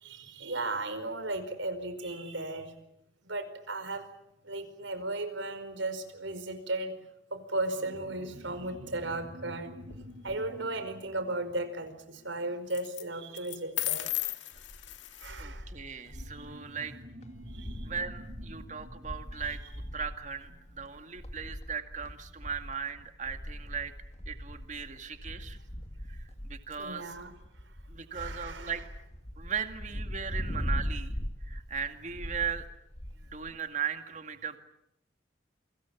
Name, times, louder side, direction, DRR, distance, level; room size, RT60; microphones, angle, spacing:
voice 1, 0.0-2.7 3.2-4.0 4.4-6.9 7.3-9.7 10.2-14.1 15.2-15.7 17.5-17.9 26.8-27.3 28.1-28.7, right 2 dB, 85° right, 9 dB, 5.1 m, -35 dB
sound 1, 7.7-12.7 16.1-21.0, equal, 60° right, 8.0 m, -49 dB
sound 2, 9.8-10.4 12.7-13.0 13.4-15.4, left 16 dB, 80° left, 2.0 m, -35 dB
sound 3, 14.5-16.5 16.8-16.9 17.2-33.5, equal, 35° left, 2.2 m, -40 dB
voice 2, 15.4-16.9 17.8-19.6 19.9-23.9 24.3-25.6 26.1-27.2 27.9-28.8 29.4-31.2 31.4-32.7 33.2-34.6, right 7 dB, 40° right, 7 dB, 2.1 m, -38 dB
28.5 x 25.5 x 7.3 m, 0.80 s
head